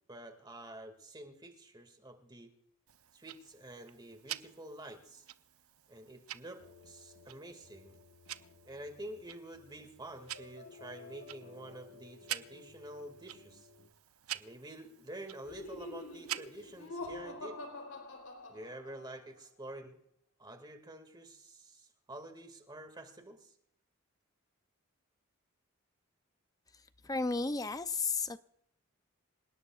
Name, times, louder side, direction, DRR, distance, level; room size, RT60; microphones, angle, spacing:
voice 1, 0.1-2.5 3.1-5.3 5.9-8.0 8.6-13.7 14.3-17.6 18.5-20.0 20.4-23.5, right 1 dB, 20° right, 2.1 m, -48 dB
Tick-tock, 2.9-16.9, right 13 dB, 75° right, 0.6 m, -48 dB
sound 1, 6.6-13.9, left 4 dB, 55° left, 1.3 m, -57 dB
Laughter, 15.4-19.2, left 2 dB, 85° left, 3.9 m, -45 dB
voice 2, 27.0-28.4, left 4 dB, 15° left, 0.5 m, -33 dB
27.0 x 18.0 x 2.4 m
head